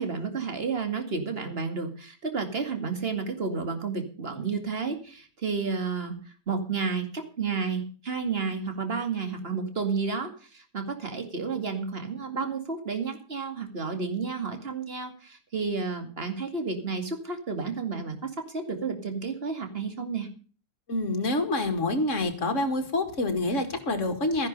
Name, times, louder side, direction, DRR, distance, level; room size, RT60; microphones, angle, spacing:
voice 1, 0.0-6.2 6.5-20.3, right 5 dB, 35° right, 6 dB, 2.4 m, -31 dB
voice 2, 20.9-24.5, left 2 dB, 50° left, 7 dB, 2.3 m, -27 dB
13.5 x 10.5 x 5.4 m, 0.40 s
omnidirectional pair, 1.7 m